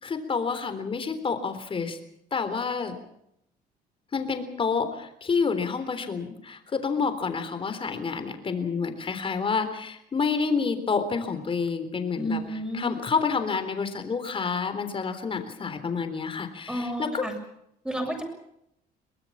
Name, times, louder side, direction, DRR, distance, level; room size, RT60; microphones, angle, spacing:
voice 1, 0.0-2.0 2.3-3.0 4.1-12.4 12.7-17.2, left 5 dB, 30° left, 9 dB, 3.6 m, -28 dB
voice 2, 12.2-12.9 16.7-17.3 17.8-18.2, equal, 5° right, 3 dB, 7.2 m, -31 dB
23.5 x 19.5 x 7.3 m, 0.77 s
cardioid pair, 110°, 17 cm